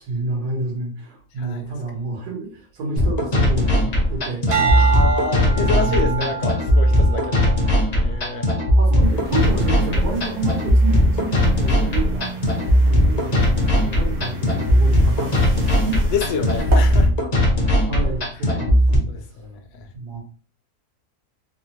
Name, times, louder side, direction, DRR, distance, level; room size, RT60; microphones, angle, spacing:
voice 1, 0.0-4.9 5.6-6.3 8.8-12.3 12.8-16.0 17.9-18.8 19.9-20.2, right 3 dB, 80° right, 1.6 m, -29 dB
sound 1, 3.0-19.0, left 1 dB, 40° left, 0.6 m, -18 dB
sound 2, 4.5-9.0 9.5-9.9, right 7 dB, 65° right, 1.1 m, -27 dB
voice 2, 4.8-7.6 8.0-8.5 16.1-17.1 19.1-19.9, left 5 dB, 70° left, 1.0 m, -28 dB
sound 3, 9.0-17.1, equal, 45° right, 0.8 m, -31 dB
3.5 x 2.1 x 2.8 m
omnidirectional pair, 1.6 m